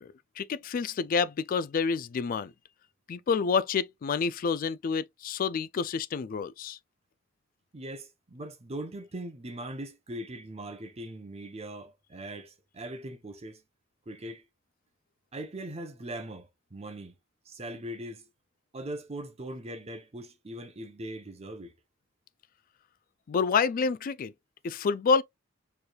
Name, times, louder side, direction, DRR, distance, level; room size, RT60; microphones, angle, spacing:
voice 1, 0.0-2.5 3.1-6.8 23.3-24.3 24.6-25.2, left 5 dB, 45° left, 0.3 m, -28 dB
voice 2, 7.7-13.6 14.1-14.4 15.3-17.2 17.5-18.3 18.7-21.7, right 1 dB, 30° right, 0.7 m, -40 dB
4.4 x 3.3 x 2.3 m
head